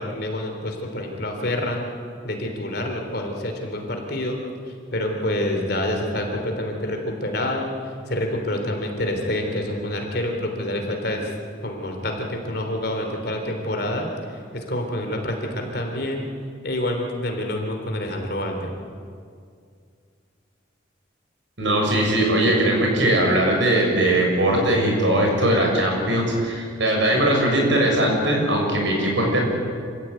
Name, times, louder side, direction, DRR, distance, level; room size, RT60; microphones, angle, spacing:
voice 1, 0.0-1.8 2.2-4.4 4.9-7.7 8.1-11.3 11.6-16.2 16.6-18.7, left 1 dB, 50° left, 3 dB, 3.6 m, -27 dB
voice 2, 21.6-29.4, right 1 dB, 70° right, 0 dB, 6.8 m, -20 dB
27.0 x 15.5 x 9.3 m, 2.2 s
head